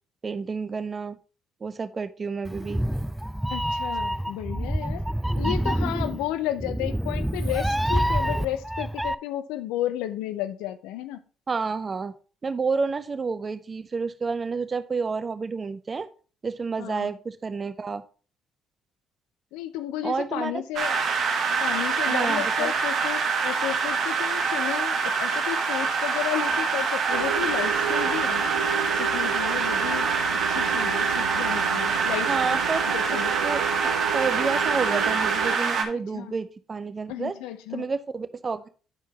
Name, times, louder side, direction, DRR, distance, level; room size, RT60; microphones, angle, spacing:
voice 1, 0.2-1.2 1.6-2.8 11.5-12.1 12.4-16.1 16.4-18.0 20.0-20.5 22.1-22.7 32.3-32.8 33.4-33.7 34.1-37.3 37.7-38.7, right 4 dB, 35° right, 0.7 m, -29 dB
Meow, 2.4-9.1, equal, 5° right, 0.3 m, -27 dB
voice 2, 3.5-5.0 5.4-11.2 16.8-17.1 19.5-20.9 21.6-28.5 29.0-30.1 30.5-32.6 32.9-33.4 36.1-36.3 37.1-37.9, left 13 dB, 75° left, 0.4 m, -32 dB
sound 1, 20.8-35.8, right 5 dB, 60° right, 1.2 m, -25 dB
sound 2, 27.1-35.6, right 8 dB, 90° right, 0.5 m, -33 dB
10.5 x 4.5 x 2.9 m
hypercardioid pair, 50°, 0 cm